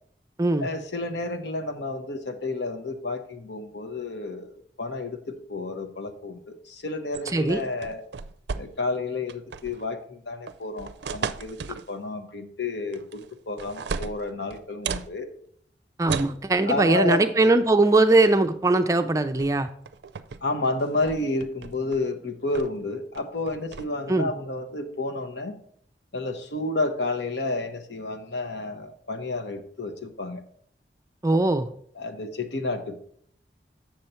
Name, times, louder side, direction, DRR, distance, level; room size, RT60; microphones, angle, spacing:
voice 1, 0.6-8.0 8.5-15.3 16.7-17.2 20.4-25.6 26.1-30.4 31.9-33.0, left 2 dB, 80° left, 6 dB, 1.0 m, -31 dB
sound 1, 7.1-9.0 9.3-9.8 10.5-11.9 12.9-13.3 13.6-15.1 16.1-16.4 17.7-17.9 18.2-18.5 19.4-19.5 19.9-20.4 20.8-22.0 22.5-22.8 23.1-23.8, right 5 dB, 75° right, 0.4 m, -35 dB
voice 2, 16.0-19.7 24.1-24.3 31.2-31.7, right 2 dB, 20° right, 8 dB, 0.4 m, -20 dB
7.5 x 6.7 x 4.4 m, 0.64 s
head